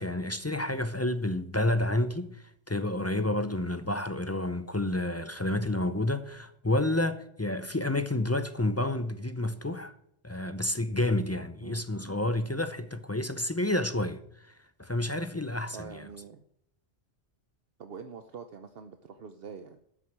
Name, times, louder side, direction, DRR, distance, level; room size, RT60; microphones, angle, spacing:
voice 1, 0.0-2.3 2.7-9.9 10.2-14.2 14.8-16.1, left 1 dB, 20° left, 0.4 m, -29 dB
voice 2, 15.7-16.4 17.8-19.8, right 6 dB, 60° right, 0.9 m, -45 dB
12.5 x 6.3 x 7.4 m
omnidirectional pair, 1.1 m